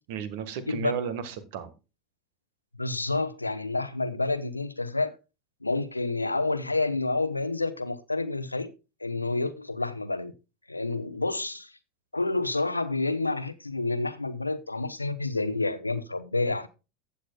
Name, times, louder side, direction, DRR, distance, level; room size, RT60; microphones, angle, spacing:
voice 1, 0.1-1.7, right 7 dB, 55° right, 1.5 m, -34 dB
voice 2, 2.8-5.1 5.6-8.7 9.0-10.3 10.7-11.7 12.1-16.7, left 3 dB, 85° left, 0.8 m, -29 dB
14.5 x 8.6 x 2.3 m
figure-of-eight pair, 75°, 0 cm